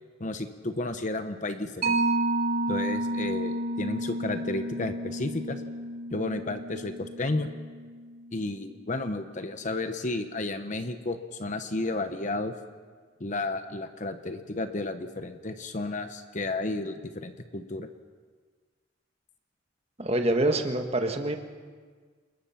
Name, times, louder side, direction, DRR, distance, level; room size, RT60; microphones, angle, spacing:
voice 1, 0.2-2.0 2.7-5.6 6.1-7.5 8.3-12.5 13.2-17.9, left 2 dB, 40° left, 8 dB, 1.0 m, -32 dB
Mallet percussion, 1.8-8.9, right 1 dB, 50° right, 3.0 m, -31 dB
voice 2, 20.0-21.4, right 1 dB, 30° right, 5 dB, 1.6 m, -26 dB
28.5 x 20.5 x 5.8 m, 1.5 s
head